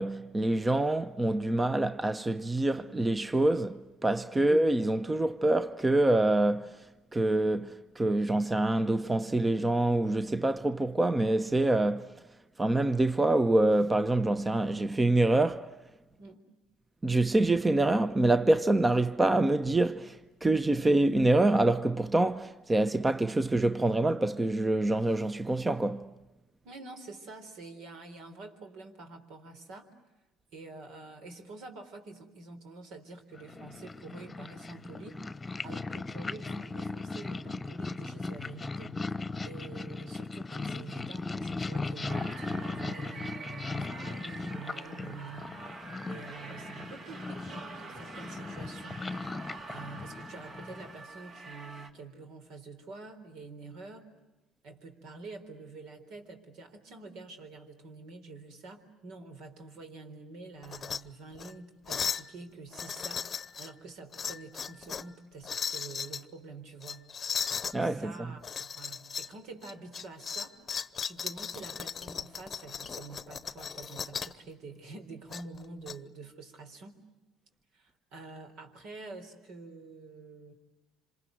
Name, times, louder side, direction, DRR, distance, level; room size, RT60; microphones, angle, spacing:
voice 1, 0.0-6.7 7.1-12.1 12.6-15.7 17.0-26.1 67.7-68.1, right 2 dB, 20° right, 0.9 m, -26 dB
voice 2, 26.6-29.9 30.5-49.2 49.7-54.1 54.6-63.3 63.6-67.1 67.7-77.0 77.7-80.5, right 3 dB, 70° right, 3.9 m, -47 dB
Purr, 33.4-51.0, left 3 dB, 20° left, 1.1 m, -38 dB
sound 1, 42.1-51.9, right 3 dB, 50° right, 2.5 m, -46 dB
sound 2, 60.6-61.0 61.4-61.5 61.9-62.3 62.7-63.7 64.1-65.1 65.4-66.2 66.8-67.8 68.4-69.3 69.6-74.4 75.3-75.9, left 6 dB, 40° left, 0.9 m, -36 dB
27.0 x 27.0 x 8.0 m
hypercardioid pair, 70°, 0 cm